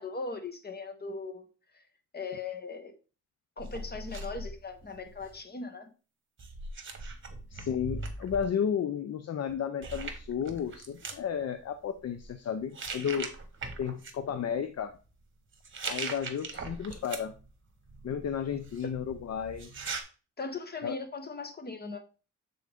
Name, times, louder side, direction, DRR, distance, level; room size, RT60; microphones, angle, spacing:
voice 1, 0.0-1.5 1.7-1.8 2.1-2.9 3.6-5.9 18.8-18.9 20.4-22.0, left 4 dB, 30° left, 7 dB, 1.1 m, -39 dB
sound 1, 3.6-5.4 6.4-8.4 9.5-9.6 9.8-11.2 12.0-12.3 12.7-14.1 15.5-17.5 17.9-20.0, right 3 dB, 40° right, 1.1 m, -40 dB
voice 2, 7.5-13.3 13.8-15.0 15.9-17.3 18.0-19.7 20.8-20.9, left 8 dB, 55° left, 9 dB, 0.5 m, -33 dB
7.5 x 3.9 x 3.4 m, 0.35 s
cardioid pair, 100°, 30 cm